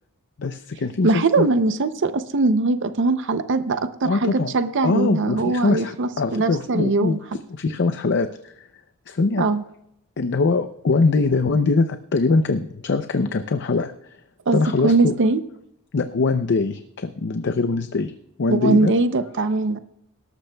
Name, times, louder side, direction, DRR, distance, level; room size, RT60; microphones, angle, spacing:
voice 1, 0.4-1.5 4.0-4.5 4.8-7.2 7.5-8.7 9.1-9.5 10.2-13.9 14.5-15.1 15.9-18.1 18.4-18.9, left 3 dB, 55° left, 9 dB, 0.6 m, -22 dB
voice 2, 1.0-7.2 9.4-9.6 14.5-15.4 18.5-19.8, right 3 dB, 55° right, 11 dB, 0.6 m, -21 dB
18.5 x 13.5 x 2.3 m, 0.78 s
head